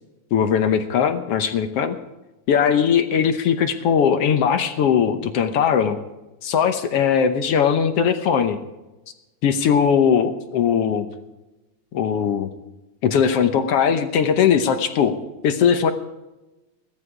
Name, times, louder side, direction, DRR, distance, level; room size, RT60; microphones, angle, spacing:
voice 1, 0.3-2.0 2.5-6.0 6.4-8.6 9.4-11.1 11.9-12.5 13.0-15.1 15.4-15.9, left 7 dB, 65° left, 8 dB, 1.7 m, -19 dB
16.5 x 13.0 x 4.9 m, 1.0 s
omnidirectional pair, 3.3 m